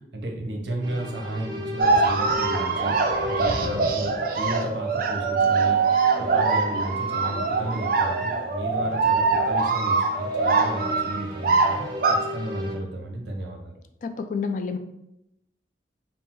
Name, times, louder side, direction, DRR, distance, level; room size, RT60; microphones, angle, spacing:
voice 1, 0.1-13.8, right 1 dB, 80° right, 1 dB, 0.8 m, -33 dB
sound 1, 0.8-12.8, left 1 dB, 25° right, 1.0 m, -38 dB
sound 2, 1.8-12.1, right 4 dB, 55° right, 0.5 m, -23 dB
voice 2, 14.0-14.8, left 5 dB, 45° left, 8 dB, 0.3 m, -28 dB
5.4 x 2.0 x 2.9 m, 0.84 s
head